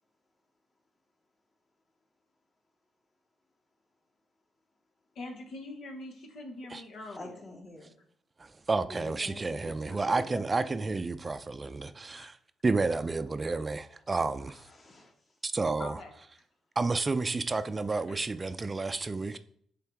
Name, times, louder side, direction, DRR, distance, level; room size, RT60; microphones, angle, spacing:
voice 1, 5.1-7.4 12.2-12.3 13.4-13.5 15.8-16.1 18.1-18.2, left 2 dB, 75° left, 1.2 m, -43 dB
voice 2, 7.1-7.9 8.9-10.9 14.5-15.4 18.4-19.4, left 1 dB, 45° left, 2.3 m, -47 dB
voice 3, 8.4-12.4 12.6-14.6 15.4-16.0 16.8-19.4, right 3 dB, 35° right, 0.4 m, -31 dB
7.0 x 3.8 x 4.6 m
supercardioid pair, 60°, 0 cm